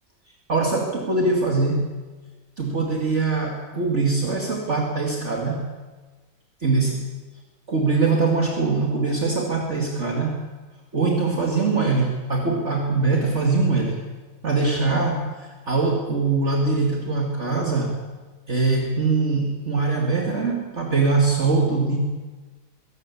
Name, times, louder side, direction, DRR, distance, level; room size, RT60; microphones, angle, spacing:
voice 1, 0.5-1.9 2.6-5.6 6.6-7.0 7.7-10.4 10.9-14.0 14.4-18.0 18.5-22.0, right 3 dB, 45° right, 0 dB, 2.5 m, -22 dB
22.5 x 17.5 x 8.5 m, 1.3 s
omnidirectional pair, 1.8 m